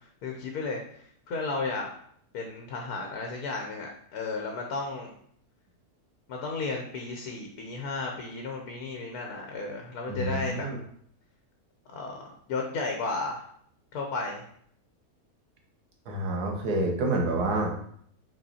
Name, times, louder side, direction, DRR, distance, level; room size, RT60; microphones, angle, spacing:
voice 1, 0.2-1.0 1.3-1.9 2.3-5.1 6.3-10.7 11.9-13.4 13.9-14.4, left 3 dB, 75° left, 2 dB, 1.3 m, -33 dB
voice 2, 10.1-10.8 16.1-17.7, right 2 dB, 85° right, 1 dB, 1.7 m, -28 dB
5.3 x 4.1 x 4.2 m, 0.65 s
omnidirectional pair, 1.6 m